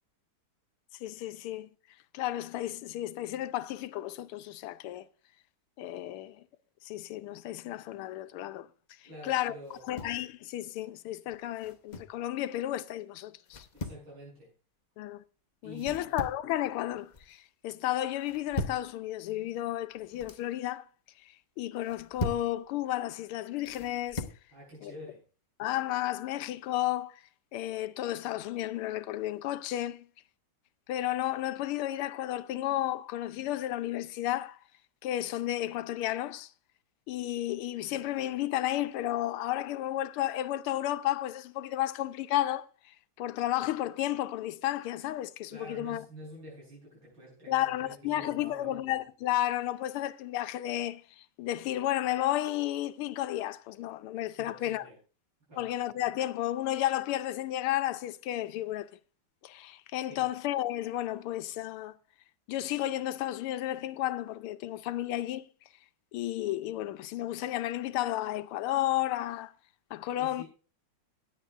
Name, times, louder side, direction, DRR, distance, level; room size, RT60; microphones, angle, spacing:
voice 1, 1.0-1.7 2.1-5.1 5.8-6.5 6.8-8.7 9.0-9.5 9.9-13.7 15.0-15.2 15.6-20.9 21.2-21.3 21.6-24.2 24.8-24.9 25.6-27.2 27.5-30.1 30.9-34.6 35.0-36.5 37.1-46.0 47.5-54.9 55.6-58.9 59.4-61.9 62.5-65.5 66.1-69.5 69.9-70.4, left 14 dB, 90° left, 1.6 m, -32 dB
voice 2, 9.0-9.9 13.7-14.5 15.6-16.3 24.5-25.2 45.5-48.7 54.4-55.0 55.5-55.7 60.1-60.3 70.1-70.5, equal, 75° right, 8.0 m, -47 dB
sound 1, 9.7-10.2 11.6-12.2 13.5-14.1 15.8-16.5 16.9-17.4 18.2-18.9 19.9-20.5 21.8-22.5 23.7-24.4, left 2 dB, 50° left, 0.5 m, -38 dB
17.0 x 10.5 x 2.4 m
omnidirectional pair, 2.3 m